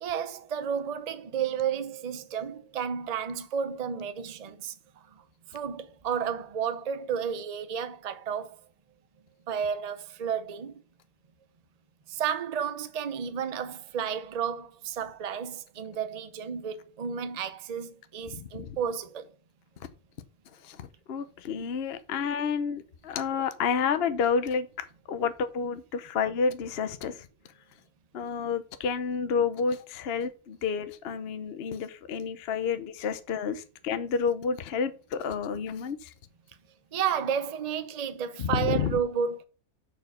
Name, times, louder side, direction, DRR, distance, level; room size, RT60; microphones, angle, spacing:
voice 1, 0.0-4.8 5.5-8.6 9.5-10.8 12.1-19.3 36.9-39.4, right 7 dB, 40° right, 0.6 m, -32 dB
voice 2, 18.3-18.8 20.6-27.3 28.1-36.1 38.4-39.0, left 6 dB, 50° left, 0.9 m, -30 dB
6.6 x 4.9 x 6.6 m
omnidirectional pair, 1.6 m